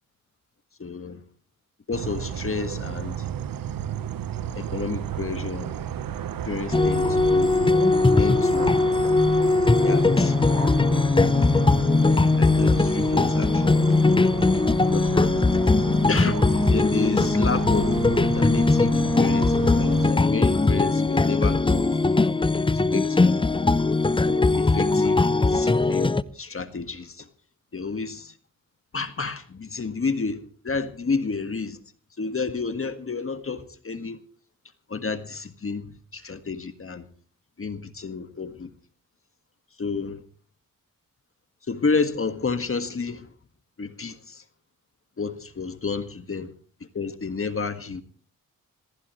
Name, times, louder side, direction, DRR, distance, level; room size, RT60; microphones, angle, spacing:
voice 1, 0.8-1.2 1.9-3.3 4.5-5.7 6.4-7.9 8.2-8.8 9.7-10.4 10.9-11.6 12.0-14.2 14.9-15.5 16.1-21.8 22.6-23.5 24.3-27.3 27.7-28.3 28.9-31.8 32.2-34.2 34.9-37.0 37.6-38.7 39.8-40.2 41.7-43.3 43.8-44.4 45.2-46.5 46.9-48.0, left 4 dB, 40° left, 1.7 m, -31 dB
sound 1, 1.9-20.1, right 9 dB, 75° right, 1.1 m, -33 dB
sound 2, 6.7-26.2, left 3 dB, 15° left, 0.7 m, -20 dB
26.5 x 16.0 x 3.1 m
cardioid pair, 60°, 34 cm